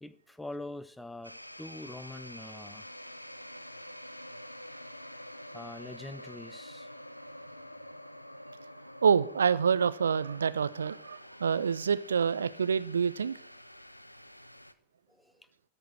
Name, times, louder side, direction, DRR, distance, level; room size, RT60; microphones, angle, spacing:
voice 1, 0.0-2.9 5.5-6.9 15.2-15.5, left 2 dB, 5° left, 0.3 m, -44 dB
sound 1, 1.2-14.7, equal, 90° left, 0.4 m, -47 dB
voice 2, 9.0-13.3, right 6 dB, 70° right, 0.4 m, -27 dB
13.0 x 4.6 x 6.1 m
figure-of-eight pair, 90°, 0 cm